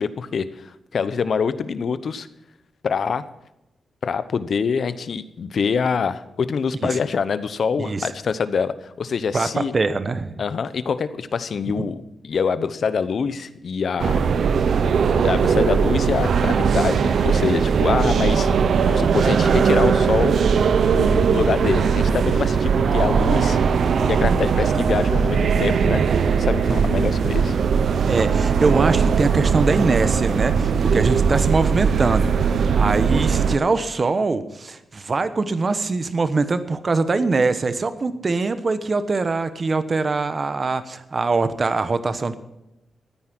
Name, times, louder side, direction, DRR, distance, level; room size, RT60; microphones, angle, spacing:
voice 1, 0.0-2.3 2.8-3.2 4.0-9.7 10.4-14.2 15.2-18.5 18.9-20.4 20.9-23.6 24.0-26.0 26.4-27.6, left 6 dB, 60° left, 13 dB, 0.9 m, -25 dB
voice 2, 7.8-8.1 9.3-10.3 11.8-11.9 26.7-26.9 28.1-32.5 32.7-42.3, right 3 dB, 40° right, 11 dB, 1.1 m, -23 dB
sound 1, 14.0-33.6, right 6 dB, 70° right, 0.8 m, -19 dB
14.5 x 9.7 x 6.2 m, 0.91 s
cardioid pair, 95°, 0 cm